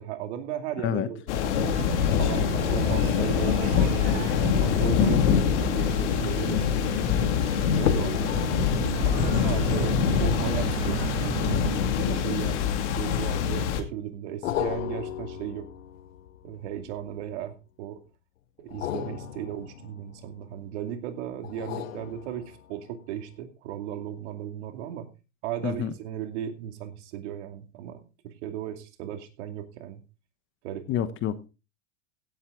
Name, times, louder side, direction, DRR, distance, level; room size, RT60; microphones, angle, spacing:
voice 1, 0.0-1.8 2.2-6.9 7.6-8.5 9.0-15.7 16.4-18.0 18.6-25.1 25.4-30.0 30.6-30.8, right 10 dB, 60° right, 2.6 m, -36 dB
sound 1, 1.3-13.8, left 8 dB, 60° left, 2.4 m, -25 dB
sound 2, 1.5-11.8, right 8 dB, 45° right, 2.3 m, -35 dB
sound 3, 13.1-13.7 14.4-17.4 18.6-20.7 21.4-22.9 23.3-23.4, left 11 dB, 80° left, 1.4 m, -35 dB
voice 2, 30.9-31.5, left 10 dB, 30° left, 1.1 m, -28 dB
16.5 x 8.2 x 3.7 m
supercardioid pair, 140°, 39 cm